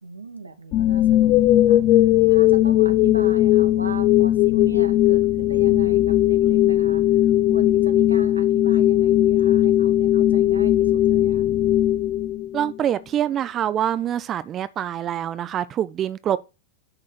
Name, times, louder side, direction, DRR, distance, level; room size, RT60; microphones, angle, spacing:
voice 1, 0.0-11.5, right 3 dB, 80° right, 1.1 m, -39 dB
sound 1, 0.7-12.8, left 13 dB, 40° left, 0.3 m, -18 dB
voice 2, 12.5-16.4, right 10 dB, 30° right, 0.5 m, -25 dB
10.0 x 3.7 x 6.1 m
figure-of-eight pair, 90°, 0 cm